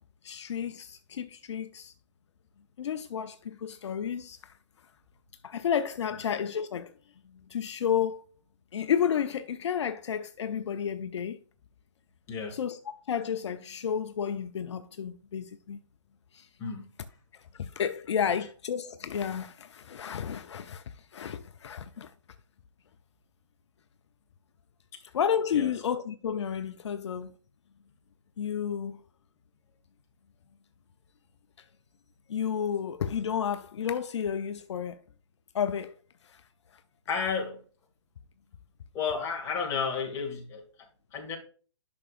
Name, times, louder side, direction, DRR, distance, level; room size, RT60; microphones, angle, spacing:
voice 1, 0.2-1.9 2.8-4.5 5.4-6.9 7.3-8.3 8.7-11.4 12.5-12.8 13.1-15.8 16.3-16.5 17.3-22.1 25.1-27.3 28.4-29.0 32.3-35.0 35.5-35.9 36.2-36.4, left 8 dB, 65° left, 0.7 m, -31 dB
voice 2, 37.1-37.6 38.9-41.4, left 5 dB, 20° left, 2.0 m, -32 dB
10.5 x 6.1 x 2.5 m
hypercardioid pair, 155°, 16 cm